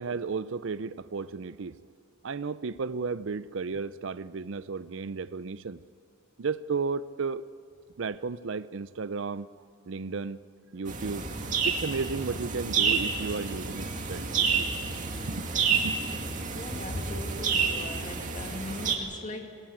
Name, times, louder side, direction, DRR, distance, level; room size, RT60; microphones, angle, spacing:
voice 1, 0.0-1.8 2.2-5.8 6.4-7.4 8.0-9.5 9.9-10.4 10.7-11.2 11.6-14.7 15.3-16.0, right 4 dB, 60° right, 16 dB, 0.5 m, -33 dB
sound 1, 10.9-19.0, right 5 dB, 35° right, 2.2 m, -29 dB
voice 2, 16.5-19.6, left 1 dB, 35° left, 3 dB, 2.3 m, -38 dB
22.5 x 18.0 x 9.0 m, 2.3 s
head